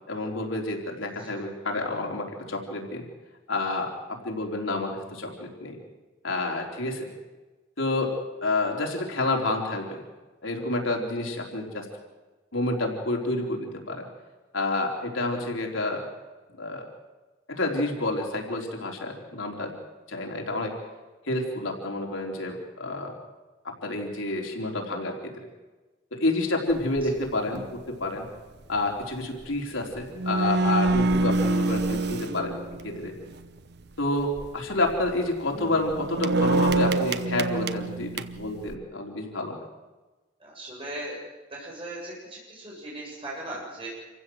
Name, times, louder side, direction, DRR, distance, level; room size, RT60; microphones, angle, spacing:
voice 1, 0.1-3.0 3.5-5.8 6.2-7.1 7.8-8.1 8.4-10.0 10.4-11.9 12.5-14.1 14.5-16.1 16.6-16.9 17.5-19.8 20.1-20.7 21.3-23.1 23.8-25.3 26.1-28.3 28.7-32.6 32.8-33.1 34.0-39.6, left 2 dB, 85° left, 1 dB, 4.0 m, -29 dB
sound 1, 26.7-27.0 27.5-27.8 29.7-29.8 30.0-33.3 34.2-34.5 34.9-35.1 35.5-38.7, right 2 dB, 55° right, 0.9 m, -26 dB
voice 2, 40.4-41.2 41.5-43.9, right 1 dB, 30° right, -5 dB, 7.6 m, -38 dB
27.0 x 15.5 x 7.9 m, 1.2 s
head